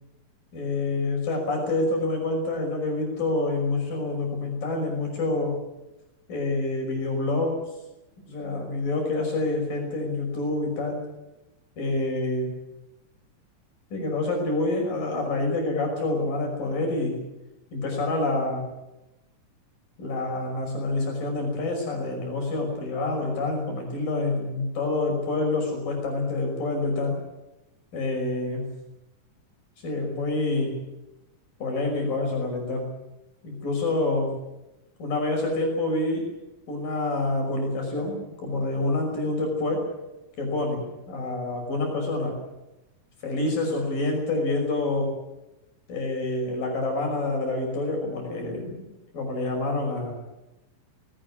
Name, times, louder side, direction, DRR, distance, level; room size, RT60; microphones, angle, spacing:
voice 1, 0.5-5.6 6.3-7.6 8.3-11.0 11.8-12.5 13.9-17.2 17.7-18.6 20.0-27.2 27.9-28.7 29.8-30.8 31.6-32.9 33.4-34.3 35.0-36.3 36.7-39.9 40.4-42.4 43.2-45.1 45.9-48.9 49.1-50.1, left 2 dB, 80° left, 1 dB, 7.4 m, -27 dB
20.0 x 19.0 x 9.8 m, 0.96 s
omnidirectional pair, 3.9 m